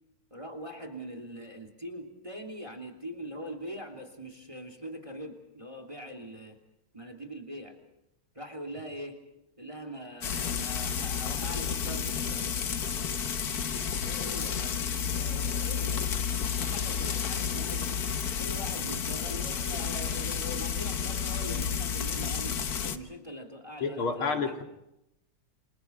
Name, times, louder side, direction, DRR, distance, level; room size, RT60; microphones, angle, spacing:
voice 1, 0.3-6.6 6.9-7.8 8.3-9.2 9.6-12.7 14.0-16.1 16.6-18.0 18.4-24.6, equal, 15° right, 3 dB, 3.0 m, -42 dB
Frying (food), 10.2-23.0, left 7 dB, 50° left, 1.5 m, -31 dB
voice 2, 23.8-24.6, left 4 dB, 80° left, 3 dB, 3.3 m, -29 dB
29.0 x 27.5 x 4.7 m, 0.86 s
omnidirectional pair, 2.3 m